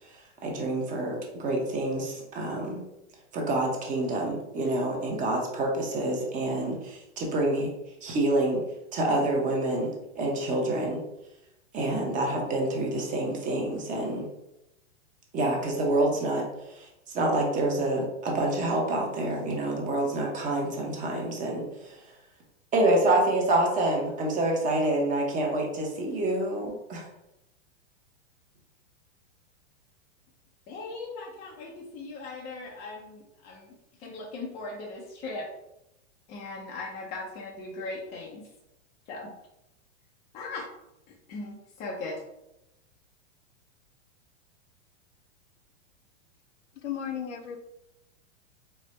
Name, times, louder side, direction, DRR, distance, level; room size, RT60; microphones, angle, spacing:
voice 1, 0.1-2.8 3.3-7.7 8.0-8.6 8.9-11.0 11.7-14.3 15.3-22.0 22.7-27.1, right 1 dB, 20° right, 0 dB, 0.7 m, -27 dB
voice 2, 30.7-35.5 36.3-38.4 39.1-39.3 40.3-40.7 41.3-42.2, left 3 dB, 20° left, -3 dB, 0.4 m, -38 dB
voice 3, 46.8-47.6, left 9 dB, 75° left, 6 dB, 0.7 m, -34 dB
4.4 x 2.0 x 3.1 m, 0.89 s
hypercardioid pair, 135°, 36 cm